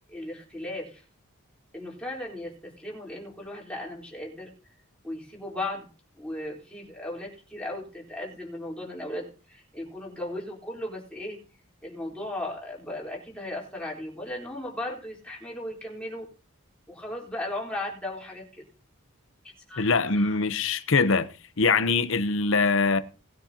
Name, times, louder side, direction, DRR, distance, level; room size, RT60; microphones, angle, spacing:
voice 1, 0.1-1.0 1.7-4.5 5.0-5.9 6.2-11.4 11.8-16.3 16.9-18.6 19.7-19.9 20.1-20.4, left 1 dB, 5° left, 3.8 m, -36 dB
voice 2, 19.8-21.3 21.6-23.0, left 4 dB, 65° left, 0.8 m, -23 dB
19.5 x 9.8 x 2.9 m
head